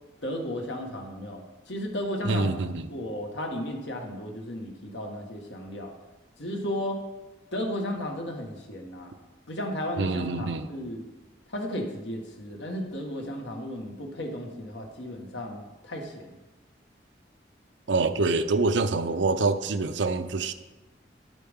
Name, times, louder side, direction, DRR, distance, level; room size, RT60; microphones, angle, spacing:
voice 1, 0.2-1.4 1.7-2.5 2.9-5.9 6.4-7.0 7.5-9.1 9.5-11.0 11.5-16.3, left 1 dB, 80° left, 1 dB, 1.6 m, -34 dB
voice 2, 2.2-2.9 10.0-10.7 17.9-20.5, right 3 dB, 85° right, 10 dB, 0.6 m, -26 dB
10.5 x 8.9 x 3.6 m, 1.1 s
head